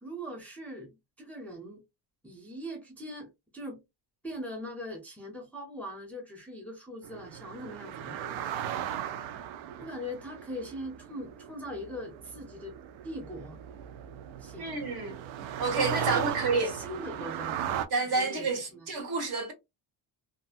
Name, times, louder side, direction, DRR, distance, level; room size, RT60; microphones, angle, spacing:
voice 1, 0.0-1.8 2.2-3.8 4.2-8.5 9.8-12.7 13.0-13.6 14.4-14.8 16.0-17.6 18.0-18.9, equal, 5° left, 0.5 m, -41 dB
sound 1, 7.0-17.9, right 10 dB, 80° right, 0.6 m, -37 dB
voice 2, 14.6-15.2 15.6-16.7 17.9-19.5, right 3 dB, 50° right, 1.1 m, -29 dB
2.6 x 2.5 x 2.4 m
cardioid pair, 150°, 46 cm